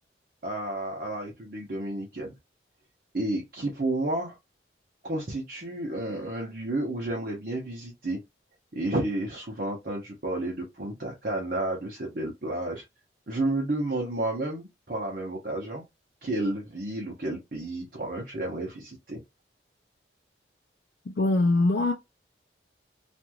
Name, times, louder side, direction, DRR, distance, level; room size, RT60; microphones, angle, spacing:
voice 1, 0.4-2.3 3.1-4.4 5.0-8.2 8.7-12.8 13.3-15.8 16.2-19.2, right 1 dB, 50° right, 0.8 m, -31 dB
voice 2, 21.2-21.9, left 2 dB, 55° left, 0.4 m, -22 dB
3.0 x 2.5 x 2.2 m
head